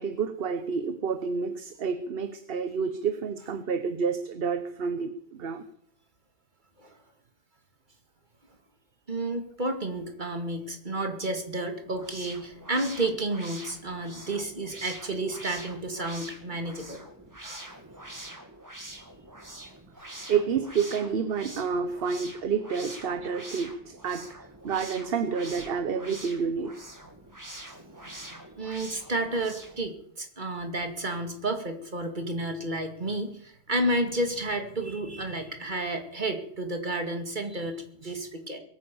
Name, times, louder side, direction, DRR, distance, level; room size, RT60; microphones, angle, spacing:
voice 1, 0.0-5.6 20.3-24.3 24.6-26.8, right 6 dB, 65° right, 11 dB, 1.1 m, -29 dB
voice 2, 9.1-17.0 17.4-17.8 19.0-19.1 19.6-19.7 27.7-38.6, right 1 dB, 45° right, 6 dB, 2.5 m, -31 dB
sound 1, 11.8-29.9, right 1 dB, 15° right, 2.1 m, -45 dB
22.0 x 9.5 x 7.0 m, 0.67 s
omnidirectional pair, 1.1 m